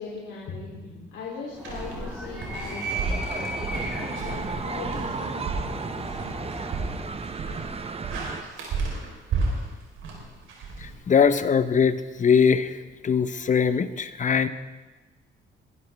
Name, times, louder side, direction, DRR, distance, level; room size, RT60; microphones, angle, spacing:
voice 1, 0.0-6.2, left 4 dB, 75° left, -6 dB, 3.3 m, -39 dB
Animal, 1.5-7.4, right 1 dB, 5° right, 3.9 m, -36 dB
sound 1, 1.6-11.4, right 3 dB, 80° right, 4.3 m, -33 dB
sound 2, 2.9-8.4, right 4 dB, 30° right, 0.9 m, -34 dB
voice 2, 10.8-12.8 13.0-14.5, left 6 dB, 40° left, 12 dB, 0.9 m, -21 dB
22.0 x 11.5 x 3.6 m, 1.2 s
cardioid pair, 90°, 20 cm